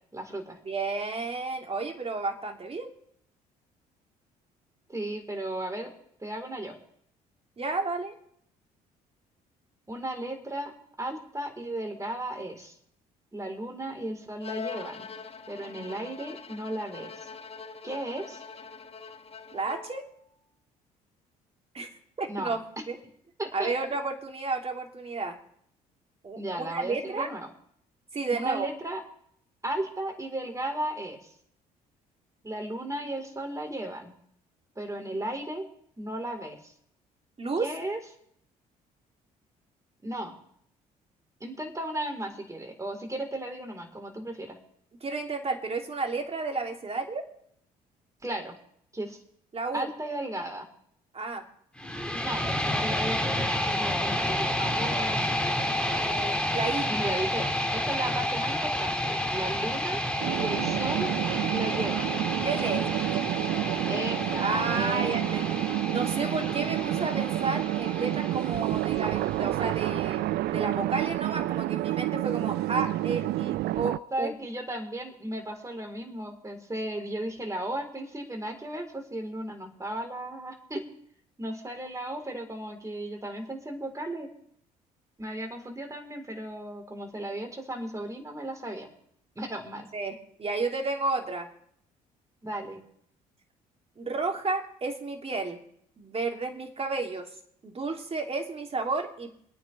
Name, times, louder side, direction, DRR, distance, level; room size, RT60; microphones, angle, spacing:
voice 1, 0.1-0.6 4.9-5.9 6.2-6.7 9.9-10.7 11.0-12.7 13.3-15.1 15.5-17.3 17.8-18.4 22.3-22.6 23.4-23.7 26.4-27.5 28.3-29.0 29.6-31.3 32.4-34.1 34.8-35.7 36.0-36.7 37.6-38.0 40.0-40.3 41.4-44.6 48.2-48.6 48.9-49.2 49.7-50.7 52.1-55.3 56.9-60.0 60.4-61.1 61.5-62.2 63.9-65.5 74.1-80.8 81.4-84.3 85.2-88.9 89.4-89.9 92.4-92.8, right 1 dB, 15° right, 3 dB, 4.0 m, -35 dB
voice 2, 0.6-2.9 7.6-8.1 19.5-20.0 21.7-21.9 22.2-23.0 23.5-25.4 26.2-27.3 28.1-28.7 37.4-37.7 45.0-47.2 49.5-49.9 51.1-51.4 55.9-56.9 62.4-62.8 64.4-65.6 65.9-70.2 70.5-74.3 89.9-91.5 94.0-95.6 96.0-97.3 97.6-99.3, right 3 dB, 30° right, 2 dB, 3.0 m, -32 dB
Bowed string instrument, 14.4-20.1, left 5 dB, 30° left, 1.0 m, -43 dB
sound 1, 51.8-69.8, left 1 dB, 5° left, 2.1 m, -30 dB
sound 2, 60.2-74.0, right 16 dB, 60° right, 0.5 m, -29 dB
26.5 x 9.3 x 3.4 m, 0.69 s
hypercardioid pair, 55°, 19 cm